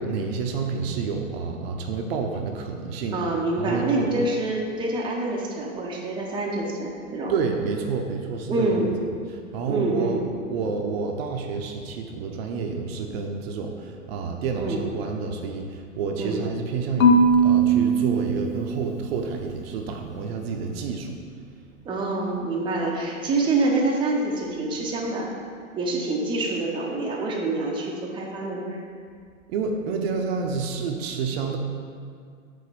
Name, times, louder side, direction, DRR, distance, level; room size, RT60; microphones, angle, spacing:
voice 1, 0.0-3.2 3.6-4.1 7.3-8.8 9.3-17.2 17.4-21.1 29.5-31.6, right 5 dB, 50° right, 3 dB, 0.7 m, -29 dB
voice 2, 3.1-7.3 8.5-9.0 9.6-10.2 14.6-14.8 16.2-16.5 21.8-25.3 25.7-28.8, right 2 dB, 10° right, -2 dB, 0.6 m, -26 dB
Marimba xylophone / Wood, 17.0-19.2, right 2 dB, 80° left, 0.7 m, -20 dB
5.0 x 3.8 x 5.3 m, 2.2 s
hypercardioid pair, 110°, 40 cm